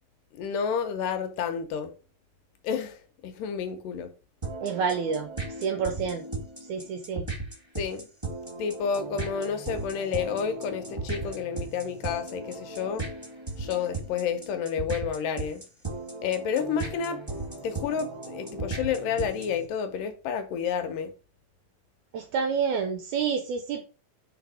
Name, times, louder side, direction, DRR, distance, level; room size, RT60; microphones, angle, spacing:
voice 1, 0.4-1.9 2.6-3.0 3.2-4.1 7.8-8.1 8.6-13.1 13.6-15.6 16.2-17.2 17.6-21.1, left 7 dB, 75° left, 2.3 m, -30 dB
sound 1, 4.4-19.6, right 2 dB, 25° right, 0.5 m, -36 dB
voice 2, 4.6-5.3 5.6-6.2 6.7-7.3 22.1-23.8, right 6 dB, 75° right, 1.8 m, -28 dB
5.7 x 4.2 x 6.1 m
omnidirectional pair, 4.1 m